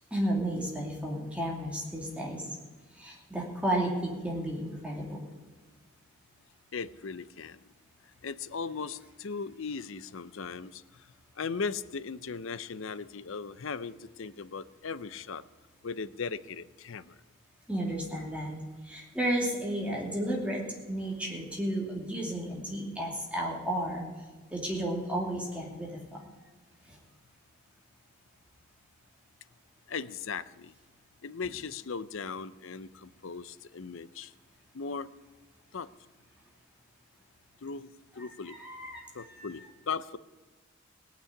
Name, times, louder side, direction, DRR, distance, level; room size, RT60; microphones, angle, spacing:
voice 1, 0.1-2.5 2.9-5.2 17.7-18.5 18.8-20.6 20.9-24.0 24.5-26.2 26.9-27.0 38.2-39.7, right 1 dB, 5° right, -2 dB, 2.7 m, -33 dB
voice 2, 6.7-7.6 8.2-10.8 11.4-15.4 15.8-17.1 29.9-30.7 31.2-34.3 34.7-35.1 35.7-35.9 37.6-38.6 39.1-40.2, left 5 dB, 65° left, 15 dB, 0.6 m, -38 dB
18.0 x 6.2 x 9.8 m, 1.3 s
head